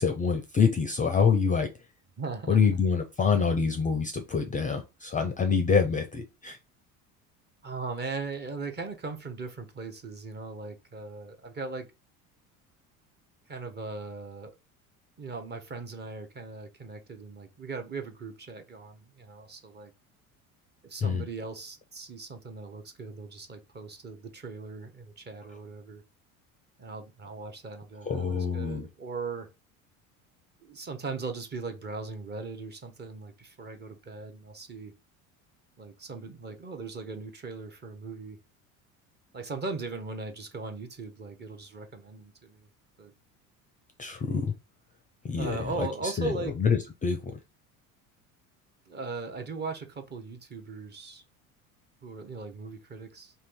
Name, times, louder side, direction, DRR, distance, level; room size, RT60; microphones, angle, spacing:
voice 1, 0.0-1.7 2.5-6.6 21.0-21.2 28.1-28.9 44.0-44.5 45.3-46.3 46.6-47.2, left 6 dB, 20° left, 0.4 m, -26 dB
voice 2, 2.2-2.6 7.6-11.9 13.5-14.5 15.2-19.9 20.8-26.0 26.8-29.5 30.6-34.9 35.8-38.4 39.3-42.7 43.0-43.1 45.4-46.5 48.9-51.2 52.0-53.3, right 4 dB, 25° right, 0.7 m, -39 dB
2.6 x 2.6 x 3.5 m
hypercardioid pair, 75°, 42 cm